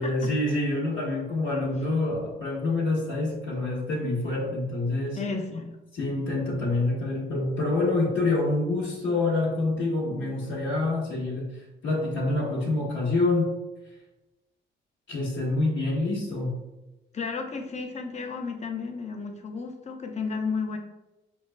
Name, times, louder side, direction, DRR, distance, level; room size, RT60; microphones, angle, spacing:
voice 1, 0.0-5.2 5.9-13.5 15.1-16.6, left 2 dB, 75° left, -9 dB, 1.2 m, -27 dB
voice 2, 5.2-5.8 17.1-20.8, left 4 dB, 35° left, 4 dB, 0.6 m, -33 dB
6.1 x 2.1 x 2.2 m, 1.0 s
cardioid pair, 90°, 20 cm